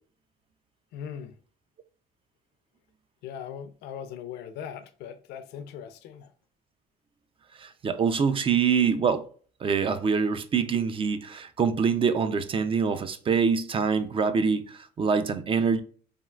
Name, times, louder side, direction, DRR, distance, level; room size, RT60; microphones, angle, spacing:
voice 1, 0.9-1.4 3.2-6.3, left 8 dB, 80° left, 0.5 m, -39 dB
voice 2, 7.6-9.2 9.6-15.8, right 6 dB, 30° right, 0.4 m, -25 dB
3.4 x 2.4 x 2.2 m
cardioid pair, 110°, 17 cm